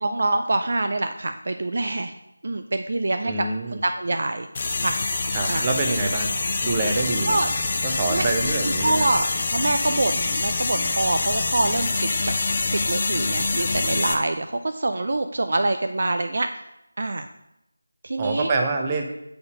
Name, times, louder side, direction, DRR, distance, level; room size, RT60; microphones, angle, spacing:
voice 1, 0.0-2.2 2.4-3.3 3.8-4.5 4.8-5.1 5.5-5.7 7.3-7.5 8.1-8.2 8.6-12.1 12.7-16.7 17.0-17.3 18.0-18.5, right 2 dB, 50° right, 7 dB, 0.4 m, -25 dB
voice 2, 3.2-3.8 5.3-6.3 6.6-7.5 7.8-9.1 18.2-19.0, right 3 dB, 20° right, 3 dB, 0.7 m, -26 dB
sound 1, 4.5-14.1, left 3 dB, 30° left, 0.7 m, -25 dB
6.8 x 4.1 x 6.3 m, 0.86 s
figure-of-eight pair, 165°, 0 cm